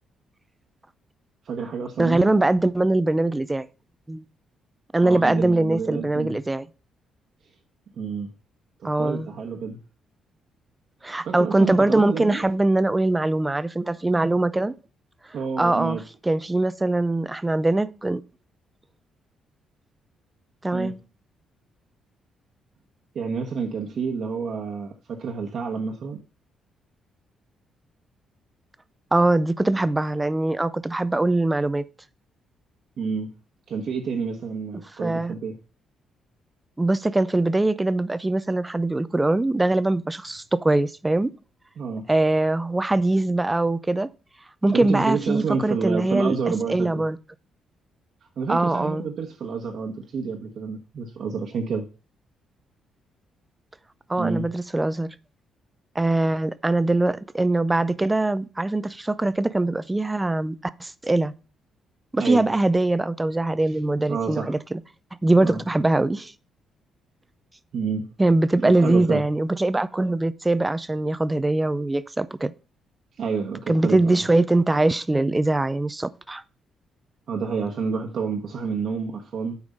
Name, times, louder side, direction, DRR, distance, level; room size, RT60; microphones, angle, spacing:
voice 1, 1.4-2.3 5.0-6.4 7.9-8.3 8.8-9.8 11.2-12.4 15.3-16.0 20.7-20.9 23.1-26.2 33.0-33.3 33.7-35.6 41.8-42.1 44.7-47.0 48.4-51.9 54.1-54.5 62.1-62.5 64.1-64.6 65.4-65.6 67.7-68.1 68.6-69.3 73.2-74.3 77.3-79.6, right 5 dB, 60° right, 1.1 m, -29 dB
voice 2, 2.0-3.7 4.1-4.2 4.9-6.7 8.8-9.3 11.0-14.7 15.6-16.0 16.3-18.2 20.6-21.0 29.1-31.8 35.0-35.4 36.8-41.3 42.1-44.1 44.6-47.2 48.5-49.1 54.1-55.1 56.0-61.3 62.1-64.6 65.2-66.3 68.2-72.5 73.7-76.4, right 2 dB, 15° right, 0.5 m, -22 dB
8.4 x 4.7 x 5.4 m
cardioid pair, 90°, 0 cm